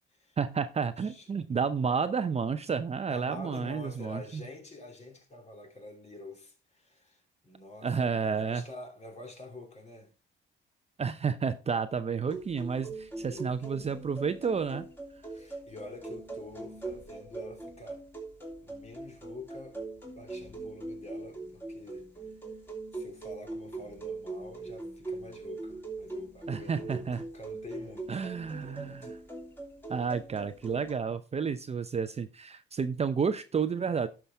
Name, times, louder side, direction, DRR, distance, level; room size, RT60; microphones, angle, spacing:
voice 1, 0.4-4.2 7.8-8.6 11.0-14.8 26.5-27.2 28.1-29.1 29.9-34.1, right 6 dB, 30° right, 0.6 m, -31 dB
voice 2, 1.0-1.3 3.0-10.1 13.2-14.0 15.3-18.1 18.6-19.8 20.1-22.4 22.9-29.1, left 2 dB, 35° left, 2.9 m, -47 dB
sound 1, 12.3-30.9, right 3 dB, 10° left, 2.8 m, -42 dB
11.0 x 5.9 x 3.5 m
cardioid pair, 90°, 20 cm